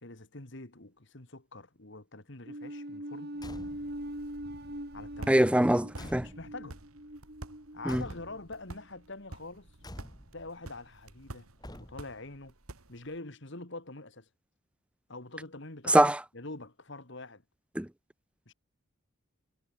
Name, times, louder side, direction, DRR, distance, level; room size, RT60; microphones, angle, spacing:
voice 1, 0.0-3.3 4.9-5.5 6.2-6.8 7.7-9.7 10.3-11.5 11.8-12.5 12.9-14.3 15.1-16.0 16.3-17.4 18.5-18.6, left 2 dB, 55° left, 2.2 m, -44 dB
sound 1, 2.5-8.9, right 1 dB, 50° right, 4.3 m, -42 dB
Car / Truck / Slam, 3.3-4.1 5.3-6.8 7.8-8.6 9.8-10.5 11.6-12.3, left 1 dB, 20° left, 6.1 m, -48 dB
sound 2, 3.6-13.2, right 1 dB, 85° right, 2.5 m, -50 dB
voice 2, 5.3-6.3 7.9-8.0 15.9-16.2 17.8-17.9, right 1 dB, 5° right, 0.5 m, -23 dB
head